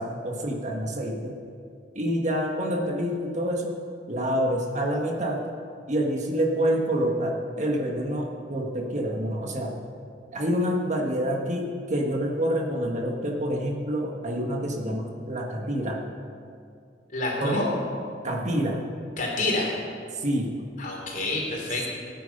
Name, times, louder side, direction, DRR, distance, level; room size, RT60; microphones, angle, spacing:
voice 1, 0.0-1.4 1.9-3.7 4.1-5.4 5.9-9.7 10.3-16.0 17.4-17.5 18.2-18.8 20.1-20.6, equal, 45° right, 0 dB, 1.5 m, -27 dB
voice 2, 17.1-17.7 19.2-19.8 20.8-21.9, left 2 dB, 50° left, -1 dB, 3.3 m, -28 dB
17.5 x 9.3 x 5.4 m, 2.3 s
head